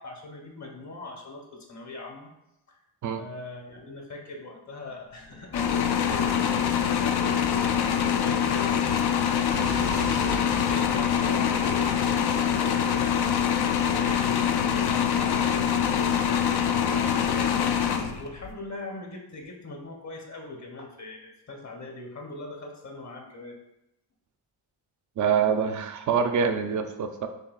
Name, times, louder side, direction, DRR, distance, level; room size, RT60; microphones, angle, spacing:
voice 1, 0.0-2.3 3.2-7.7 8.0-23.6, left 2 dB, 40° left, 1 dB, 0.9 m, -41 dB
sound 1, 5.5-18.5, left 8 dB, 65° left, 0.5 m, -24 dB
Explosion, 9.5-13.5, right 3 dB, 90° right, 0.8 m, -39 dB
voice 2, 25.2-27.3, right 6 dB, 45° right, 7 dB, 0.5 m, -25 dB
6.5 x 2.3 x 2.3 m, 0.86 s
cardioid pair, 75°, 43 cm